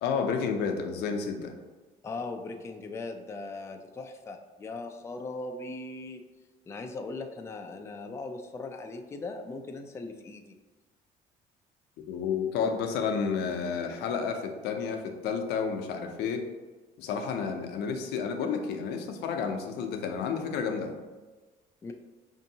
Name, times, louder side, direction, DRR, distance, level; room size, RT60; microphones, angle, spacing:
voice 1, 0.0-1.5 12.0-16.4 17.0-21.0, left 6 dB, 80° left, 5 dB, 0.5 m, -31 dB
voice 2, 2.0-6.2 6.7-10.6 21.8-21.9, left 3 dB, 15° left, 5 dB, 0.3 m, -39 dB
5.1 x 2.7 x 2.7 m, 1.3 s
cardioid pair, 110°, 17 cm